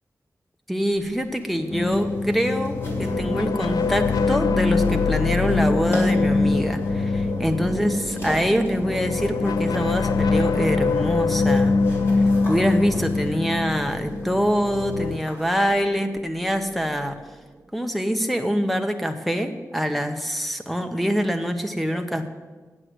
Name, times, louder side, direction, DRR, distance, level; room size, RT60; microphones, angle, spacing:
voice 1, 0.7-11.8 12.5-17.2 17.7-22.3, equal, ahead, 6 dB, 0.9 m, -25 dB
sound 1, 0.9-15.6, equal, 35° left, 4.1 m, -42 dB
sound 2, 1.7-15.2, left 4 dB, 85° left, 0.4 m, -23 dB
sound 3, 2.8-17.9, right 3 dB, 60° right, 0.9 m, -37 dB
9.5 x 7.8 x 7.8 m, 1.3 s
wide cardioid pair, 125°, 6 cm